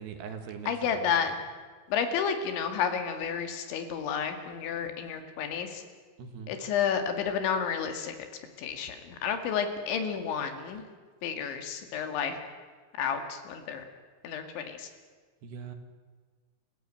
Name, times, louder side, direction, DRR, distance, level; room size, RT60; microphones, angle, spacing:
voice 1, 0.0-1.1 6.2-6.6 15.4-15.8, right 6 dB, 70° right, 6 dB, 3.8 m, -41 dB
voice 2, 0.7-1.3 1.9-5.8 6.5-8.1 8.6-10.8 11.2-12.4 13.0-13.8 14.2-14.9, left 7 dB, 80° left, 6 dB, 4.4 m, -31 dB
28.5 x 16.0 x 9.0 m, 1.5 s
omnidirectional pair, 5.2 m